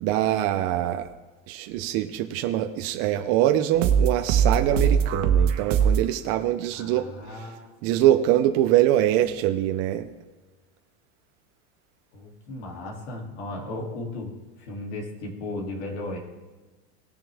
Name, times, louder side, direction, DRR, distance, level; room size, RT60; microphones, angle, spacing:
voice 1, 0.0-1.1 1.5-7.1 7.3-7.5 7.8-10.1, right 12 dB, 35° right, 6 dB, 0.6 m, -23 dB
sound 1, 3.7-6.1, right 7 dB, 75° right, 1.4 m, -21 dB
voice 2, 6.7-7.8 12.1-16.2, left 2 dB, 60° left, 0 dB, 2.9 m, -36 dB
19.0 x 6.7 x 3.5 m, 1.3 s
supercardioid pair, 165°, 37 cm